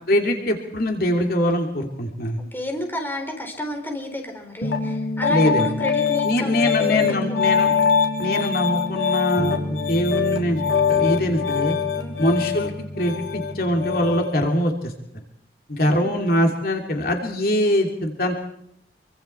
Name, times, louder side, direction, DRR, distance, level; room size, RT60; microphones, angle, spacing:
voice 1, 0.1-2.4 5.3-5.7 6.2-7.7 8.2-10.6 10.9-11.8 12.2-12.7 13.0-14.9 15.7-18.4, equal, 55° left, 2 dB, 2.9 m, -22 dB
voice 2, 2.5-7.8 12.0-12.3 15.8-16.3, left 1 dB, 10° left, 3 dB, 3.8 m, -32 dB
Piano, 4.6-14.3, left 6 dB, 90° left, 3.5 m, -23 dB
26.5 x 24.5 x 4.5 m, 0.75 s
head